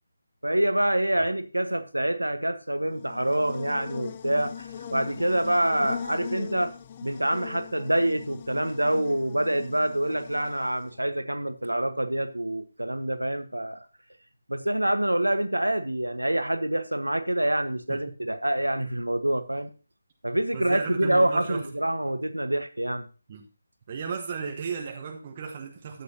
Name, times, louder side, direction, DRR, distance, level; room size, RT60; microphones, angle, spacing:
voice 1, 0.4-6.7 7.0-13.9 14.5-19.7 20.2-23.1, right 1 dB, 90° right, 10 dB, 1.2 m, -26 dB
Buzz, 2.8-11.0, left 8 dB, 30° left, 0.5 m, -40 dB
voice 2, 20.5-21.7 23.3-23.5 23.9-26.0, right 6 dB, 30° right, 2 dB, 1.1 m, -35 dB
12.5 x 8.4 x 2.8 m, 0.33 s
figure-of-eight pair, 155°, 0 cm